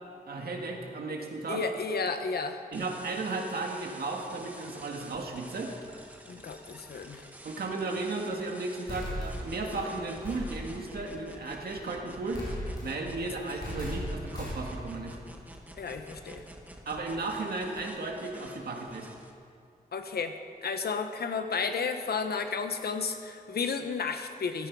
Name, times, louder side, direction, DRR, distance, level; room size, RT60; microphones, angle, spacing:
voice 1, 0.3-1.7 2.7-5.7 7.4-12.4 12.8-15.2 16.9-19.1, right 3 dB, 75° right, 1 dB, 2.0 m, -35 dB
voice 2, 1.5-2.6 6.3-7.2 15.8-16.4 19.9-20.3 20.6-24.7, left 5 dB, 80° left, 7 dB, 1.0 m, -32 dB
sound 1, 2.7-19.3, right 1 dB, 10° right, 1.1 m, -49 dB
sound 2, 8.9-9.8 10.2-10.8 12.3-13.1 13.6-14.9, equal, 25° left, 4.5 m, -37 dB
16.0 x 14.5 x 4.8 m, 2.4 s
wide cardioid pair, 170°, 16 cm